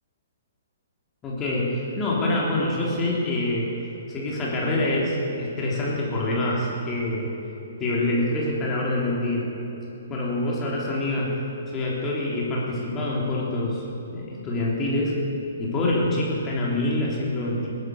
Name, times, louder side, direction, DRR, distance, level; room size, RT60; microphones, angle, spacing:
voice 1, 1.2-3.7 4.1-7.3 7.8-9.5 10.1-11.4 11.7-13.8 14.1-15.2 15.6-17.7, left 1 dB, 20° left, -5 dB, 3.4 m, -25 dB
19.5 x 11.0 x 6.6 m, 3.0 s
figure-of-eight pair, 120°, 0 cm